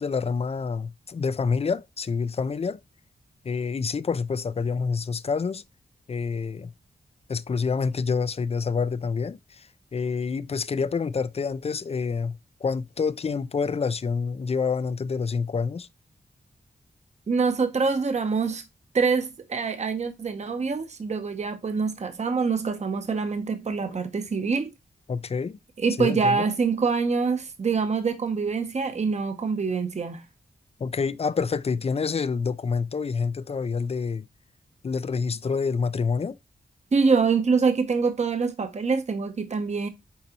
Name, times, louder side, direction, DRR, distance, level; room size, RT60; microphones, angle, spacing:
voice 1, 0.0-2.8 3.4-5.6 6.1-6.7 7.3-15.9 23.8-24.0 25.1-25.6 26.0-26.5 30.8-34.3 34.8-36.4, left 5 dB, 35° left, 0.4 m, -27 dB
voice 2, 17.3-18.6 18.9-24.7 25.8-30.2 36.9-39.9, right 5 dB, 40° right, 0.8 m, -25 dB
8.5 x 4.0 x 2.9 m
wide cardioid pair, 120°, 17 cm